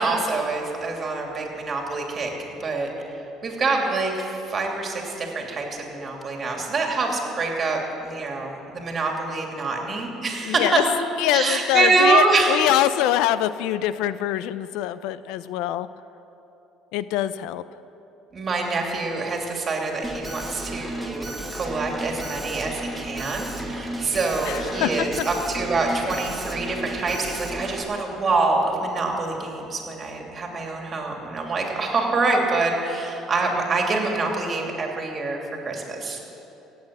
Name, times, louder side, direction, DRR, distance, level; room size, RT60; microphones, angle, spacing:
voice 1, 0.0-2.3 2.6-2.9 3.4-10.8 11.3-12.6 18.3-21.2 21.5-35.4 35.6-36.2, right 3 dB, 35° right, 1 dB, 2.8 m, -25 dB
voice 2, 10.5-10.8 11.2-15.9 16.9-17.6 24.4-25.1, left 13 dB, 80° left, 15 dB, 0.4 m, -24 dB
Alarm, 20.0-27.8, right 1 dB, 5° right, 1.7 m, -33 dB
17.0 x 8.6 x 7.6 m, 3.0 s
cardioid pair, 110°, 0 cm